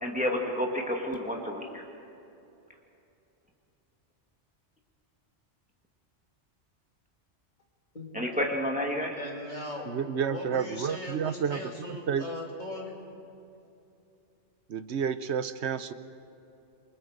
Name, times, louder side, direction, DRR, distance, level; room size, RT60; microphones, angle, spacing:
voice 1, 0.0-1.8 8.1-9.1, left 1 dB, 5° right, 0 dB, 2.1 m, -30 dB
voice 2, 9.1-9.9 10.3-13.0, left 1 dB, 40° left, -1 dB, 3.1 m, -39 dB
voice 3, 9.9-11.6 11.9-12.2 14.7-15.9, right 7 dB, 70° right, 12 dB, 1.0 m, -30 dB
28.5 x 23.5 x 5.1 m, 2.7 s
omnidirectional pair, 1.2 m